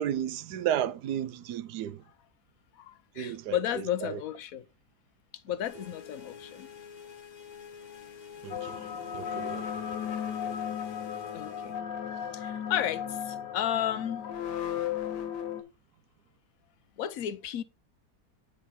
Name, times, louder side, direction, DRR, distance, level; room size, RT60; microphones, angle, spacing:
voice 1, 0.0-2.0 3.2-4.2 8.4-8.9 9.1-9.7, right 10 dB, 85° right, 1.2 m, -33 dB
voice 2, 2.8-4.6 5.4-6.7 11.3-11.8 12.3-14.2 17.0-17.6, left 11 dB, 65° left, 1.0 m, -33 dB
sound 1, 5.6-11.8, left 7 dB, 40° left, 0.7 m, -48 dB
sound 2, 8.5-15.6, left 9 dB, 85° left, 1.5 m, -35 dB
9.2 x 3.6 x 4.2 m
omnidirectional pair, 1.8 m